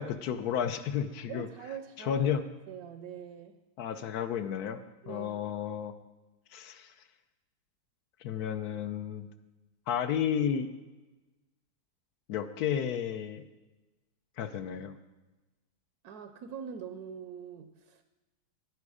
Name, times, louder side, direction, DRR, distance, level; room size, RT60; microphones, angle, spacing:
voice 1, 0.0-1.5 2.0-2.4 3.8-4.8 5.1-5.9 6.5-6.9 8.2-9.3 9.9-10.7 12.3-13.4 14.4-15.0, left 8 dB, 75° left, 10 dB, 1.1 m, -32 dB
voice 2, 1.3-2.3 2.7-3.6 5.0-5.4 16.0-18.0, right 8 dB, 75° right, 8 dB, 1.1 m, -43 dB
9.8 x 9.3 x 4.9 m, 1.1 s
omnidirectional pair, 1.7 m